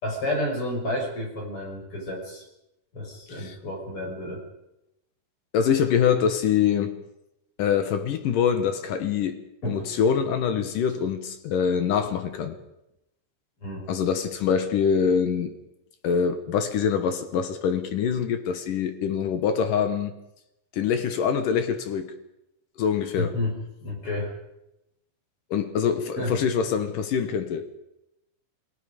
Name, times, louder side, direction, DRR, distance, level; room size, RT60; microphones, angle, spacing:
voice 1, 0.0-2.4 2.9-4.4 9.6-9.9 13.6-13.9 23.1-24.3 26.2-26.4, left 1 dB, 30° left, 6.1 m, -30 dB
voice 2, 5.5-7.0 7.6-9.4 9.7-12.6 13.9-15.5 16.0-20.1 20.7-22.1 22.8-23.3 25.5-27.6, left 7 dB, 65° left, 2.2 m, -24 dB
29.0 x 20.0 x 5.2 m
omnidirectional pair, 5.5 m